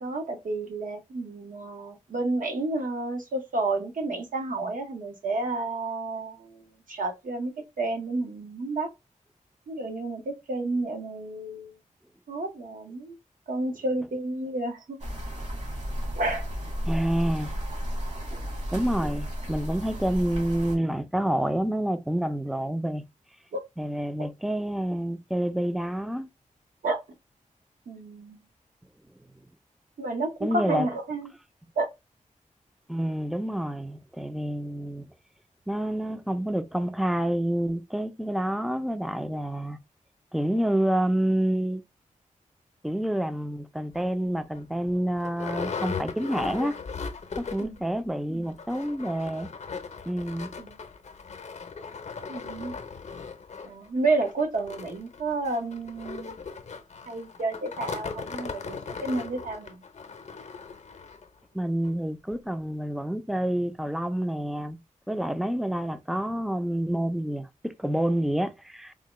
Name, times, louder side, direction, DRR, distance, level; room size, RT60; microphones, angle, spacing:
voice 1, 0.0-6.6 6.9-7.5 7.8-8.9 9.7-11.7 12.3-13.1 13.5-15.0 16.1-16.5 18.3-18.4 23.5-23.6 26.8-27.0 27.9-28.4 30.0-31.3 31.8-31.9 47.6-47.8 50.6-50.8 52.3-52.7 53.6-56.4 57.1-59.8, right 2 dB, 80° right, 0.9 m, -30 dB
sound 1, 15.0-20.8, equal, 55° right, 1.5 m, -33 dB
voice 2, 16.9-17.5 18.7-23.0 23.8-26.3 30.4-30.9 32.9-35.0 35.7-39.8 40.3-41.8 42.8-46.8 47.4-49.5 50.1-50.5 61.5-64.8 65.1-68.9, right 1 dB, ahead, 0.3 m, -28 dB
sound 2, 43.9-44.1 44.6-44.7 44.9-47.8 48.1-48.2 48.5-61.3 61.8-61.9 62.3-62.4, left 5 dB, 55° left, 0.6 m, -38 dB
3.6 x 2.1 x 3.0 m
wide cardioid pair, 110°, 14 cm